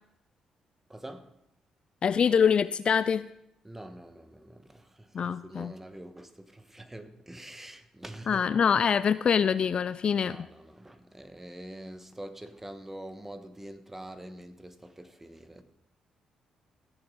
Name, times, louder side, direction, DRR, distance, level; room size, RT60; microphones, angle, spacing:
voice 1, 0.9-1.3 3.6-8.5 10.1-15.6, right 1 dB, 15° right, 1.4 m, -45 dB
voice 2, 2.0-3.2 5.1-5.7 8.3-10.4, left 7 dB, 50° left, 0.4 m, -24 dB
17.0 x 7.0 x 4.1 m
hypercardioid pair, 50°, 2 cm